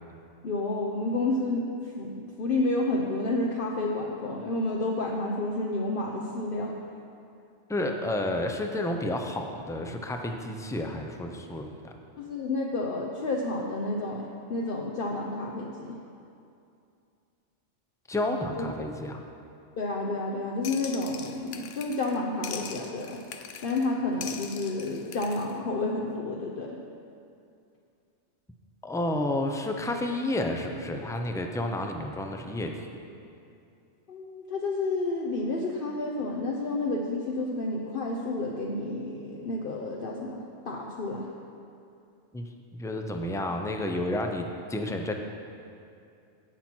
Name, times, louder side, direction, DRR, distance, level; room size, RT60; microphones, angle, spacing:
voice 1, 0.4-6.8 12.2-16.0 18.6-18.7 19.8-23.2 23.6-26.8 34.1-41.3, left 2 dB, 55° left, -1 dB, 0.9 m, -30 dB
voice 2, 7.7-11.9 18.1-19.2 28.8-32.8 42.3-42.5 42.8-45.1, left 1 dB, 5° left, 4 dB, 0.4 m, -30 dB
sound 1, 20.6-22.2 22.4-23.9 24.2-25.5, left 7 dB, 80° left, 1.0 m, -41 dB
17.0 x 5.9 x 4.5 m, 2.5 s
omnidirectional pair, 1.2 m